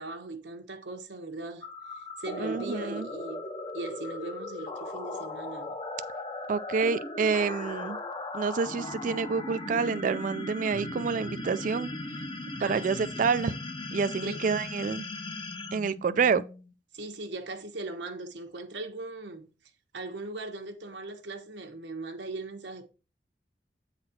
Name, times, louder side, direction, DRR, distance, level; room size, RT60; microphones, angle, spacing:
voice 1, 0.0-1.6 2.0-3.4 3.7-5.8 12.6-13.3 14.2-14.4 16.9-19.5 19.9-22.9, right 2 dB, 80° right, 1.1 m, -39 dB
sound 1, 1.6-16.7, left 2 dB, 25° left, 0.7 m, -38 dB
voice 2, 2.4-3.1 6.5-8.0 8.3-11.9 12.6-13.6 13.9-15.0 15.7-16.4, right 5 dB, 45° right, 0.3 m, -28 dB
8.7 x 4.1 x 4.3 m
head